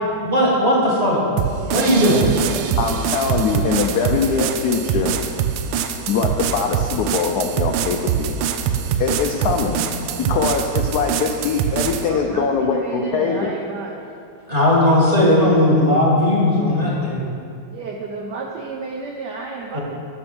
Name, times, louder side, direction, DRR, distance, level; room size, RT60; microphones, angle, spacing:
voice 1, 0.2-1.2 1.7-2.2 14.5-17.2 19.7-19.8, left 1 dB, 20° right, -5 dB, 1.6 m, -17 dB
sound 1, 1.4-12.1, right 8 dB, 90° right, 1.5 m, -24 dB
voice 2, 1.5-3.0 12.0-14.1 17.7-19.8, right 4 dB, 70° right, 1 dB, 1.0 m, -32 dB
voice 3, 2.8-5.1 6.1-8.4 9.0-9.7 10.2-13.5, left 5 dB, 85° left, 3 dB, 0.8 m, -22 dB
8.5 x 6.3 x 6.0 m, 2.5 s
omnidirectional pair, 2.3 m